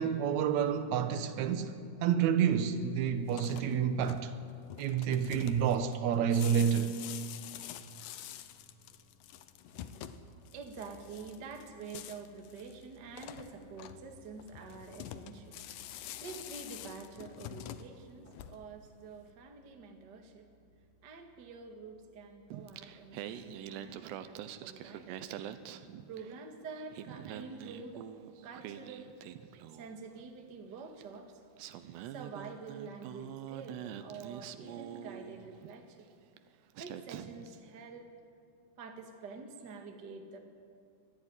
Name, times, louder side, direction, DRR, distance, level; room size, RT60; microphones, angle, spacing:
voice 1, 0.0-1.7 2.0-4.3 4.8-7.0, right 8 dB, 75° right, 1.7 m, -29 dB
sound 1, 3.2-18.9, left 11 dB, 75° left, 2.0 m, -47 dB
voice 2, 9.7-20.5 21.0-25.2 26.1-28.0 28.4-29.2 29.7-31.4 32.1-36.1 36.8-38.1 38.8-40.4, right 4 dB, 40° right, 1.7 m, -47 dB
Singing, 22.5-26.5 26.8-30.0 31.0-31.1 31.6-35.8 36.4-36.5 36.7-37.6, right 10 dB, 90° right, 3.1 m, -45 dB
24.5 x 14.5 x 10.0 m
omnidirectional pair, 4.8 m